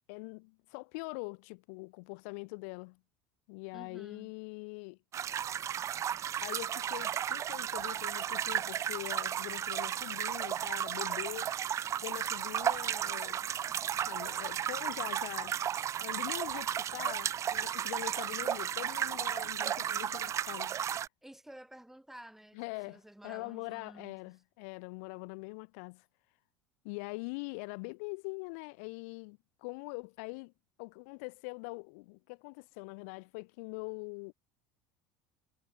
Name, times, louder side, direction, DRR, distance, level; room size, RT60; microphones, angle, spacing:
voice 1, 0.1-3.0 3.5-5.0 6.4-11.5 12.0-13.5 14.0-15.6 16.0-20.7 22.6-26.0 26.8-30.5 30.8-34.3, left 32 dB, 75° left, 1.0 m, -43 dB
voice 2, 3.7-4.3 21.2-24.4, right 1 dB, 5° right, 4.4 m, -52 dB
Stream Under Bridge, 5.1-21.1, right 10 dB, 40° right, 0.8 m, -34 dB
supercardioid pair, 100°, 8 cm